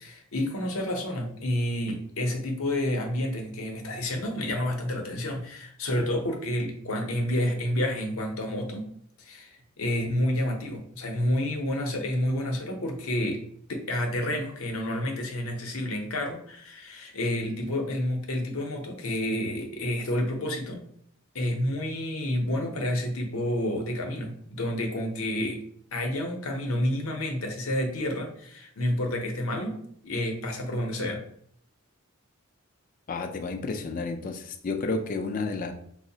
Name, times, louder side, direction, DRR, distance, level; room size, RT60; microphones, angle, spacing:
voice 1, 0.0-8.9 9.2-13.4 13.7-20.8 21.3-25.6 25.9-31.2, left 1 dB, 70° left, 2 dB, 0.7 m, -29 dB
voice 2, 33.1-35.7, left 3 dB, 40° left, 6 dB, 0.3 m, -31 dB
4.5 x 2.0 x 2.7 m, 0.66 s
head